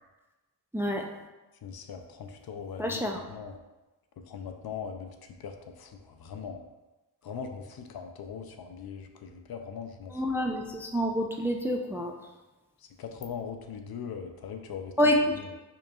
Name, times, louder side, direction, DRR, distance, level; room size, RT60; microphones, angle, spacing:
voice 1, 0.7-1.1 2.8-3.2 10.1-12.2 15.0-15.4, equal, 5° right, 2 dB, 0.3 m, -27 dB
voice 2, 1.6-3.0 3.3-3.6 4.3-5.1 5.4-6.6 7.2-10.1 13.0-14.9, left 6 dB, 60° left, 5 dB, 0.5 m, -40 dB
4.6 x 3.0 x 2.3 m, 1.1 s
cardioid pair, 50°, 43 cm